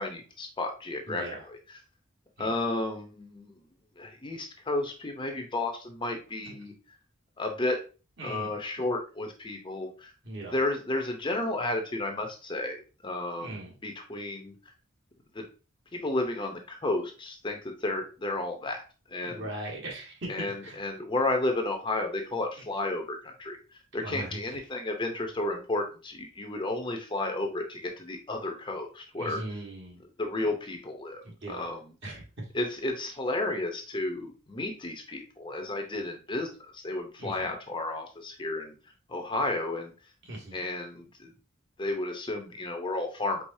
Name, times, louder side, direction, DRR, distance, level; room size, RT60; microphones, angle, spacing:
voice 1, 0.0-1.6 2.4-3.6 4.0-6.7 7.4-7.8 8.2-10.1 10.5-14.5 15.3-15.5 15.9-18.8 19.1-19.4 20.3-23.6 23.9-29.4 30.2-31.2 31.5-31.8 32.5-36.5 36.7-38.7 39.1-39.9 40.5-41.3 41.8-43.4, left 2 dB, 25° left, 3 dB, 0.7 m, -32 dB
voice 2, 1.1-1.5 2.4-2.6 6.4-6.6 8.2-8.5 8.8-8.9 10.2-10.6 13.4-13.7 19.2-20.8 22.6-22.7 23.9-24.4 29.2-30.0 31.2-31.7 32.0-32.5 37.2-37.5 40.2-40.6, right 1 dB, 55° right, -2 dB, 1.5 m, -39 dB
4.7 x 3.8 x 2.7 m, 0.34 s
head